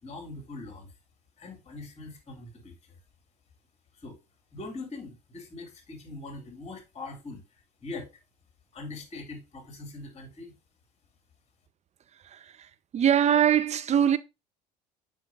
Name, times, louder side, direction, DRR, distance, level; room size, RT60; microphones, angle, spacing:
voice 1, 0.0-0.9 1.4-2.7 4.0-4.1 4.5-7.4 7.8-8.1 8.7-10.5, left 2 dB, 30° left, 3.5 m, -42 dB
voice 2, 12.2-12.7 12.9-14.2, right 9 dB, 30° right, 0.8 m, -23 dB
7.1 x 5.6 x 3.8 m
hypercardioid pair, 65°, 21 cm